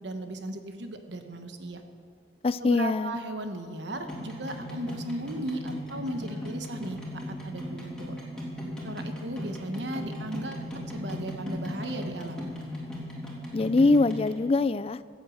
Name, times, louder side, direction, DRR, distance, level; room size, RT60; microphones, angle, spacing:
voice 1, 0.0-1.8 2.6-7.0 7.4-8.1 8.8-12.5, right 1 dB, 75° right, 6 dB, 1.3 m, -36 dB
voice 2, 2.4-3.2 13.5-15.0, left 3 dB, 30° left, 16 dB, 0.3 m, -23 dB
sound 1, 3.9-14.3, left 1 dB, 5° left, 2.6 m, -37 dB
14.5 x 8.2 x 7.8 m, 2.1 s
head